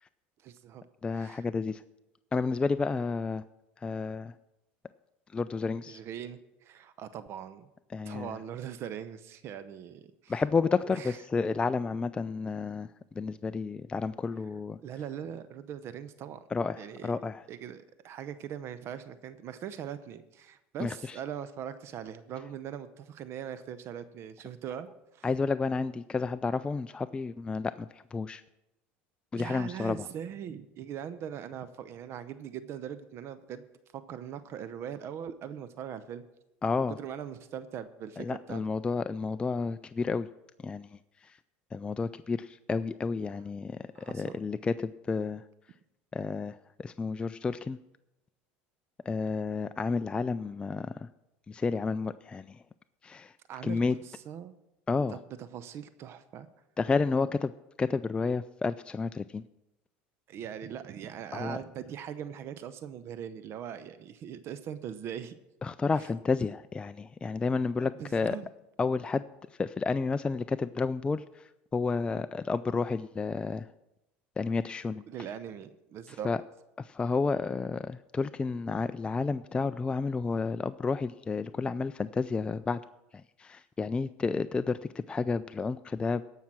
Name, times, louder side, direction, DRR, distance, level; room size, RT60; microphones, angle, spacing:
voice 1, 0.4-0.8 1.1-1.5 5.9-7.7 8.1-10.3 10.8-11.2 14.8-16.4 16.8-17.2 17.5-25.3 29.3-33.6 33.9-36.2 36.9-38.6 43.9-44.4 53.5-54.5 55.1-55.2 55.5-56.5 60.3-65.3 67.8-68.5 75.1-76.3, right 9 dB, 50° right, 13 dB, 0.7 m, -41 dB
voice 2, 1.0-1.8 2.3-3.4 3.8-4.3 5.3-6.0 7.9-8.4 10.3-12.9 13.2-14.8 16.5-17.4 20.8-21.2 25.2-28.4 29.3-30.1 36.6-37.0 38.2-40.3 40.6-40.9 41.2-41.4 41.7-45.4 46.1-47.8 49.1-51.1 51.5-52.6 53.0-53.3 53.6-54.0 54.9-55.2 56.8-57.5 57.8-59.4 61.3-61.6 65.6-68.4 68.8-69.2 69.6-73.7 74.4-75.0 76.1-76.4 76.8-82.8 83.1-86.2, left 4 dB, 20° left, 12 dB, 0.3 m, -31 dB
16.0 x 5.7 x 6.0 m, 0.90 s
supercardioid pair, 95°, 6 cm